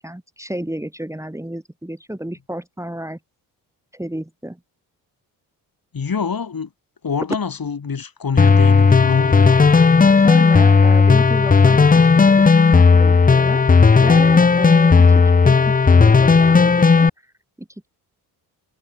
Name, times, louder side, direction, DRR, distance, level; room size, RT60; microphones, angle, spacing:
voice 1, 0.0-3.2 3.9-4.6 10.2-13.7 14.0-17.1 17.6-17.7, right 1 dB, 5° right, 3.3 m, -32 dB
voice 2, 5.9-6.7 7.0-9.6, left 6 dB, 45° left, 7.8 m, -25 dB
sound 1, 8.4-17.1, left 4 dB, 20° left, 0.7 m, -13 dB
hypercardioid pair, 50°, 48 cm